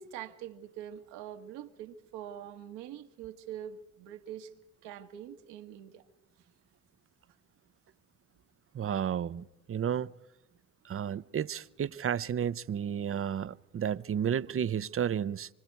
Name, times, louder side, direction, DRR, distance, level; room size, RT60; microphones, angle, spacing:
voice 1, 0.0-4.5 4.8-6.1, right 10 dB, 75° right, 1.5 m, -44 dB
voice 2, 8.7-10.1 10.9-15.5, right 8 dB, 30° right, 0.7 m, -32 dB
25.5 x 25.0 x 4.7 m
hypercardioid pair, 55°, 42 cm